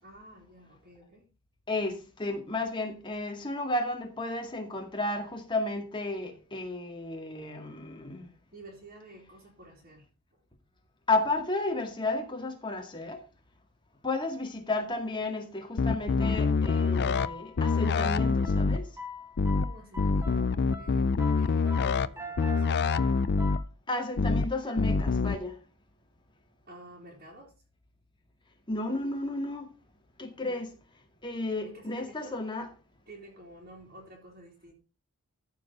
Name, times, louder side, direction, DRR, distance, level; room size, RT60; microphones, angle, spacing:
voice 1, 0.0-1.3 8.5-10.0 10.3-10.4 19.5-20.5 20.7-22.8 26.7-27.5 30.4-30.6 31.6-32.4 33.1-34.7, right 1 dB, 45° right, 3.4 m, -51 dB
voice 2, 1.7-8.3 11.1-13.2 14.0-18.9 23.9-25.6 28.7-29.7 30.2-30.7 31.2-32.7, left 2 dB, 20° left, 2.1 m, -32 dB
sound 1, 15.8-17.3 17.6-18.8 19.4-19.7 20.0-22.1 22.4-23.6 24.2-24.5 24.8-25.4, left 4 dB, 50° left, 0.5 m, -25 dB
sound 2, 16.2-23.6, left 3 dB, 10° right, 1.6 m, -43 dB
14.0 x 5.4 x 5.3 m
head